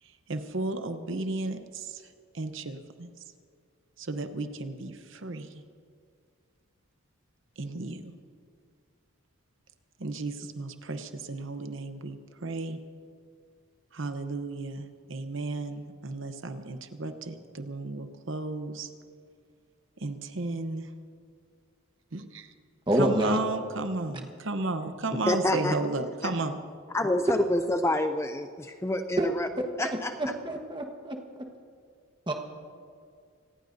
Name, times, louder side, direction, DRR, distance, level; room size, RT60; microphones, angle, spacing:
voice 1, 0.0-2.1 2.3-3.1 4.0-5.6 7.6-8.1 10.0-12.8 13.9-18.9 20.0-20.9 22.1-22.5 22.9-26.6, right 2 dB, 60° right, 8 dB, 0.9 m, -34 dB
voice 2, 22.9-23.4 29.2-29.3 29.8-31.2 32.3-32.4, right 1 dB, 20° right, 3 dB, 1.3 m, -27 dB
voice 3, 25.3-25.8 26.2-26.3 26.9-29.5 29.8-30.1, left 1 dB, 10° left, 7 dB, 0.3 m, -27 dB
26.0 x 19.0 x 2.7 m, 2.2 s
head